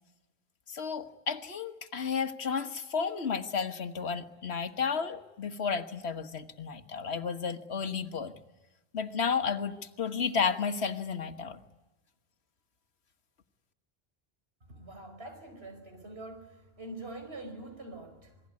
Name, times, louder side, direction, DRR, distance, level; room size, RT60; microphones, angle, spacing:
voice 1, 0.7-8.3 8.9-11.6, left 6 dB, 85° left, 1.6 m, -32 dB
voice 2, 14.7-18.4, right 2 dB, 70° right, 5.3 m, -44 dB
27.5 x 20.5 x 9.6 m
omnidirectional pair, 1.1 m